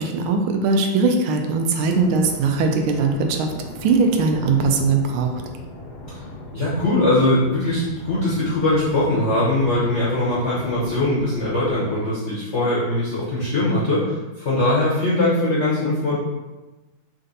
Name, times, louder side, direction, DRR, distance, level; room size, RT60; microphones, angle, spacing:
voice 1, 0.0-3.5 3.8-5.3, right 4 dB, 80° right, 4 dB, 1.4 m, -20 dB
sound 1, 1.8-11.8, left 1 dB, 80° left, 1.6 m, -38 dB
voice 2, 6.5-16.2, left 1 dB, 50° left, -9 dB, 0.8 m, -21 dB
4.3 x 2.6 x 3.9 m, 1.1 s
omnidirectional pair, 2.3 m